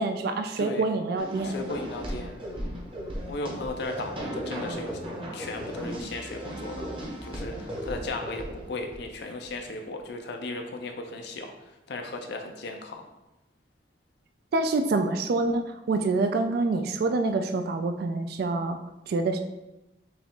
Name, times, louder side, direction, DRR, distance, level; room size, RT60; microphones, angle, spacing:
voice 1, 0.0-1.5 14.5-18.8 19.1-19.4, right 3 dB, 60° right, 7 dB, 0.3 m, -26 dB
sound 1, 1.2-9.5, equal, 30° right, 0.9 m, -36 dB
voice 2, 1.4-2.4 3.3-5.0 5.3-6.9 7.2-13.0, left 2 dB, 65° left, 3 dB, 0.5 m, -36 dB
6.0 x 2.3 x 3.7 m, 0.99 s
head